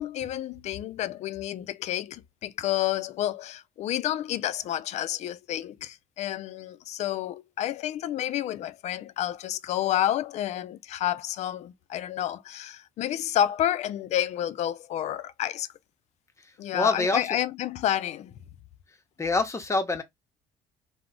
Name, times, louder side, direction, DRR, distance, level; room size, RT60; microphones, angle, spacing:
voice 1, 0.0-15.7 16.6-18.3, left 12 dB, 50° left, 0.4 m, -30 dB
voice 2, 16.7-17.2 19.2-20.0, left 3 dB, 20° left, 0.7 m, -25 dB
2.3 x 2.0 x 3.6 m
supercardioid pair, 80°, 14 cm